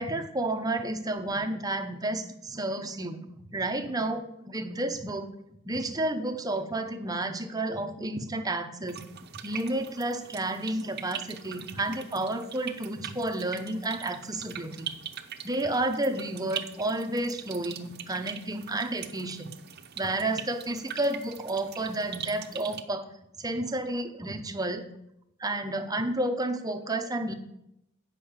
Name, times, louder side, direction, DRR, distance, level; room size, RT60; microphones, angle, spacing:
voice 1, 0.0-3.2 3.5-5.3 5.6-9.0 9.4-14.9 15.4-19.5 20.0-23.1 23.4-24.8 25.4-27.3, right 2 dB, 20° right, 7 dB, 0.7 m, -31 dB
sound 1, 8.9-22.8, right 9 dB, 50° right, 0.7 m, -42 dB
8.4 x 5.6 x 7.2 m, 0.81 s
head